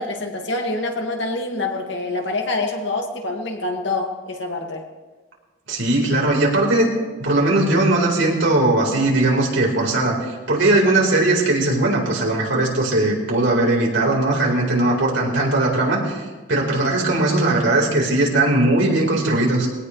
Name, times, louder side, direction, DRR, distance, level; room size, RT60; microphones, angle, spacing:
voice 1, 0.0-4.8, left 2 dB, 65° left, 2 dB, 2.2 m, -26 dB
voice 2, 5.7-6.9 7.2-16.2 16.5-19.7, right 2 dB, 75° right, -2 dB, 4.4 m, -19 dB
22.0 x 17.5 x 3.3 m, 1.3 s
head